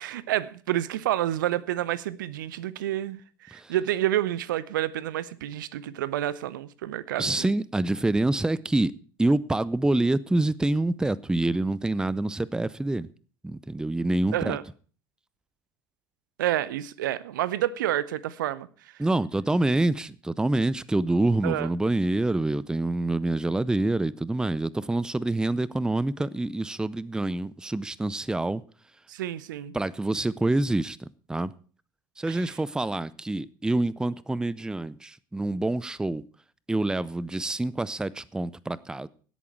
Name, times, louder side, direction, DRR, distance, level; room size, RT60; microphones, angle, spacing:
voice 1, 0.0-7.5 14.3-14.6 16.4-18.7 21.4-21.7 29.1-29.7 32.3-32.5, right 13 dB, 65° right, 0.7 m, -29 dB
voice 2, 7.2-8.9 9.2-13.1 13.4-14.6 19.0-28.6 29.7-31.0 31.3-31.5 32.2-36.2 36.7-39.1, right 2 dB, 5° right, 0.5 m, -26 dB
17.0 x 8.5 x 4.6 m
figure-of-eight pair, 65°, 11 cm